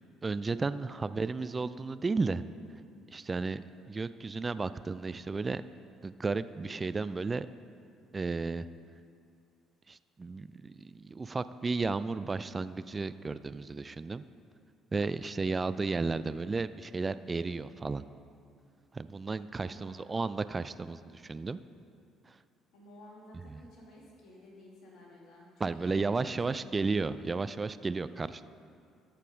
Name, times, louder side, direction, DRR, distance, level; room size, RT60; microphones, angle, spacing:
voice 1, 0.2-2.4 3.1-3.6 3.9-5.6 6.0-7.5 8.1-8.7 9.9-14.2 14.9-18.0 18.9-21.6 22.3-22.4 23.5-23.6 25.6-28.5, right 4 dB, 30° right, 14 dB, 0.3 m, -33 dB
voice 2, 19.6-20.1 22.7-26.2 26.4-26.5, left 1 dB, 65° left, -3 dB, 2.4 m, -53 dB
13.5 x 5.3 x 5.2 m, 2.4 s
hypercardioid pair, 55°, 0 cm